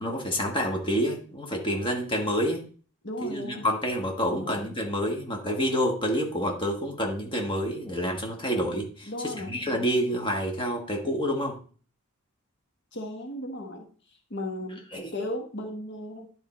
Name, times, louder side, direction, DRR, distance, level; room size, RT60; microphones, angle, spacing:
voice 1, 0.0-2.6 3.2-11.6 14.9-15.1, equal, 20° left, 1 dB, 1.4 m, -28 dB
voice 2, 3.0-3.7 4.3-4.6 9.1-9.6 12.9-13.9 14.3-14.9 15.1-16.3, left 1 dB, 50° left, 4 dB, 1.2 m, -35 dB
10.5 x 4.5 x 4.3 m, 0.41 s
head